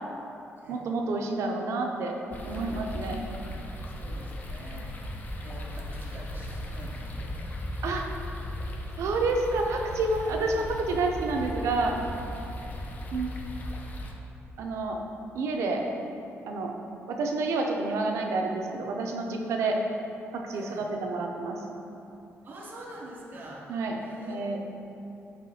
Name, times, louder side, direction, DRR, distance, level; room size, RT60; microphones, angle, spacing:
voice 1, 0.7-2.1 2.4-3.2 4.7-4.8 7.8-8.1 9.0-12.0 13.1-13.3 14.6-15.0 15.3-15.8 16.5-16.7 17.1-19.8 20.3-21.6 23.7-24.0 24.3-24.6, right 3 dB, 80° right, 2 dB, 0.4 m, -29 dB
sound 1, 2.3-14.1, left 1 dB, 35° left, 0.4 m, -37 dB
voice 2, 2.9-4.8 5.4-7.4 10.5-10.6 12.6-12.7 20.5-20.9 22.4-23.7 24.0-24.6, right 1 dB, 40° right, -4 dB, 0.7 m, -46 dB
5.5 x 3.0 x 2.7 m, 2.9 s
cardioid pair, 140°, 5 cm